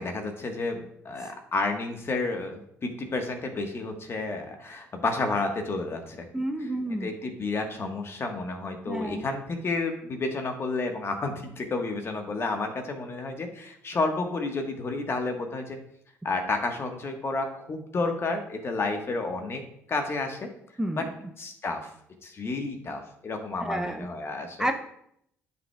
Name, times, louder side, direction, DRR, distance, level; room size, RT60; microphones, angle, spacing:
voice 1, 0.0-6.3 6.6-6.7 7.0-15.8 16.2-19.6 19.9-20.5 21.0-21.1 21.4-21.9 22.2-24.7, left 3 dB, 40° left, 4 dB, 1.3 m, -31 dB
voice 2, 6.3-7.1 8.8-9.2 20.8-21.0 23.6-24.1 24.6-24.7, right 1 dB, 10° right, 5 dB, 0.7 m, -29 dB
9.5 x 5.6 x 2.3 m, 0.72 s
supercardioid pair, 60°, 6 cm